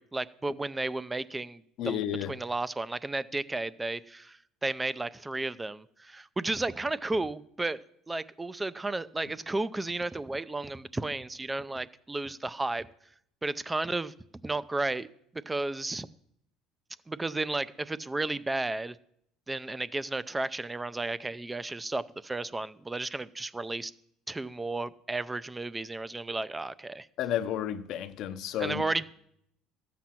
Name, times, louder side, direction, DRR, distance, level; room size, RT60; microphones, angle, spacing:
voice 1, 0.0-2.0 2.3-7.8 8.1-12.9 13.4-14.1 14.4-15.1 15.5-16.1 17.1-19.0 19.5-23.9 24.3-27.1 28.6-29.0, right 2 dB, 10° right, 0.4 m, -33 dB
voice 2, 1.8-2.3 27.2-28.8, left 10 dB, 60° left, 0.7 m, -32 dB
14.0 x 7.6 x 5.8 m
cardioid pair, 125°, 0 cm